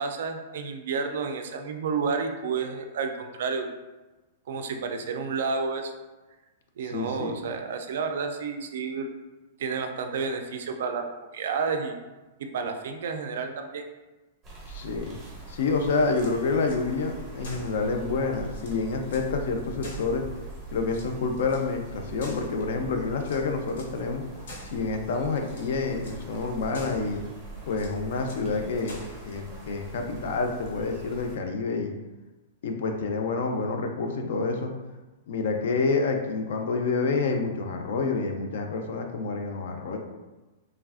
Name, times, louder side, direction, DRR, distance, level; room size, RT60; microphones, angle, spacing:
voice 1, 0.0-3.7 4.5-5.9 6.8-9.1 9.6-12.0 12.4-13.8, right 5 dB, 60° right, 5 dB, 0.3 m, -30 dB
voice 2, 6.8-7.4 14.7-15.2 15.5-20.2 20.7-24.2 24.6-27.2 27.7-29.0 29.2-31.9 32.6-34.7 35.3-40.0, left 4 dB, 60° left, 4 dB, 0.4 m, -28 dB
sound 1, 14.4-31.4, right 3 dB, 10° right, 0.6 m, -42 dB
sound 2, 16.0-16.8 17.4-17.8 18.2-18.3 18.5-19.3 19.8-20.5 20.9-21.7 22.2-22.8 23.2-24.0 24.5-24.8 25.4-25.7 26.0-26.2 26.7-27.1 27.7-28.5 28.9-29.2, left 2 dB, 80° left, 0.7 m, -45 dB
3.2 x 2.4 x 2.4 m, 1.1 s
supercardioid pair, 170°, 0 cm